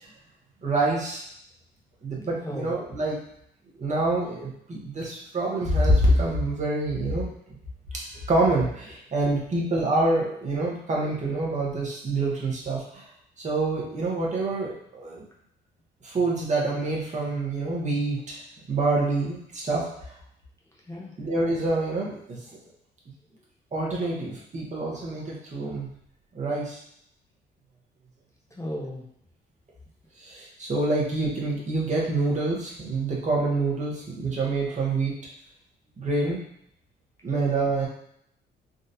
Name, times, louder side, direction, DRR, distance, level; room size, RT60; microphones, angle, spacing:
voice 1, 0.6-1.2 2.0-3.2 3.8-7.3 7.9-13.0 13.4-15.2 16.0-18.4 18.7-19.8 21.2-22.4 23.7-25.9 26.3-26.8 30.2-35.2 36.0-36.4 37.2-37.9, right 2 dB, 35° right, -4 dB, 1.0 m, -26 dB
voice 2, 2.4-2.7 20.9-21.1 28.6-29.1, left 1 dB, 15° left, -4 dB, 0.7 m, -34 dB
3.7 x 2.4 x 2.7 m, 0.72 s
cardioid pair, 90°, 20 cm